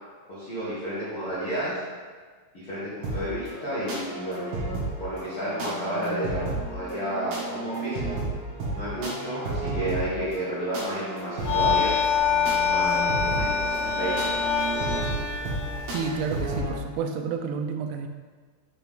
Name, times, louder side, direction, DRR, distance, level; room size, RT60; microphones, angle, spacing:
voice 1, 0.3-1.8 2.5-4.5 5.0-8.0 8.7-11.9 12.6-14.4, right 1 dB, 50° left, -12 dB, 1.6 m, -31 dB
sound 1, 3.0-16.7, right 2 dB, 60° right, 3.5 m, -33 dB
sound 2, 11.4-16.6, left 6 dB, 75° left, 2.6 m, -26 dB
voice 2, 15.9-18.1, right 6 dB, 80° right, 5 dB, 2.6 m, -30 dB
7.0 x 6.1 x 3.7 m, 1.5 s
omnidirectional pair, 5.1 m